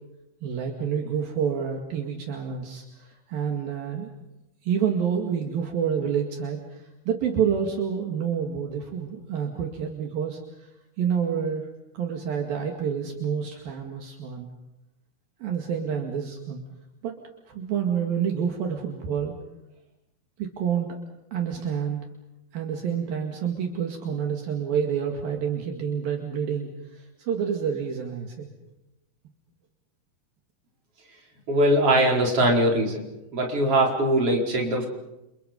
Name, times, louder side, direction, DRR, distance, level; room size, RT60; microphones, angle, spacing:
voice 1, 0.4-4.1 4.6-10.7 11.0-11.7 11.9-14.5 15.4-16.6 17.0-17.2 17.5-19.4 20.4-21.0 21.3-22.0 22.5-28.5, right 7 dB, 70° right, 2 dB, 3.9 m, -28 dB
voice 2, 31.5-33.0 33.3-34.9, right 1 dB, 35° right, 0 dB, 5.7 m, -21 dB
30.0 x 29.0 x 5.4 m, 0.93 s
omnidirectional pair, 4.5 m